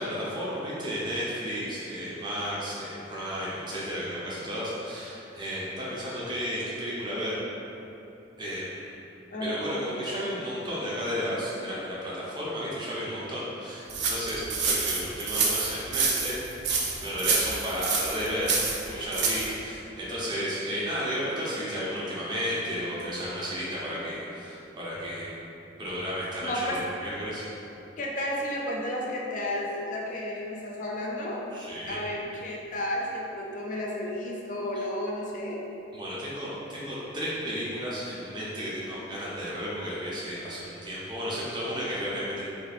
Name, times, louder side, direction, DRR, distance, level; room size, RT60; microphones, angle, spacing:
voice 1, 0.0-7.4 8.4-8.9 9.4-16.4 17.0-18.5 18.9-25.3 25.8-27.4 31.5-32.0 35.9-42.4, equal, 25° right, -8 dB, 0.6 m, -33 dB
voice 2, 9.3-9.9 26.4-26.8 28.0-31.4 31.9-35.6, left 1 dB, 40° left, -2 dB, 0.4 m, -32 dB
sound 1, 13.9-19.5, right 4 dB, 60° right, 0.4 m, -27 dB
2.6 x 2.5 x 4.1 m, 2.9 s
head